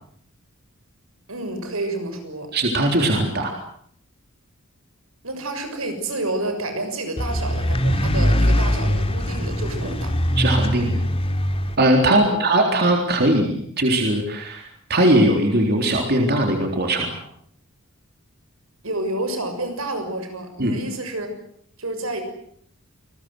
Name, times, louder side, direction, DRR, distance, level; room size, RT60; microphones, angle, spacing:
voice 1, 1.3-2.5 5.2-10.2 12.2-12.4 18.8-21.3 21.8-22.2, right 2 dB, 80° right, 7 dB, 6.8 m, -29 dB
voice 2, 2.5-3.5 10.4-11.0 11.8-17.2 20.6-20.7, right 1 dB, 50° right, 3 dB, 3.8 m, -20 dB
sound 1, 7.2-11.8, equal, 25° left, 3.3 m, -21 dB
28.5 x 21.5 x 8.0 m, 0.67 s
head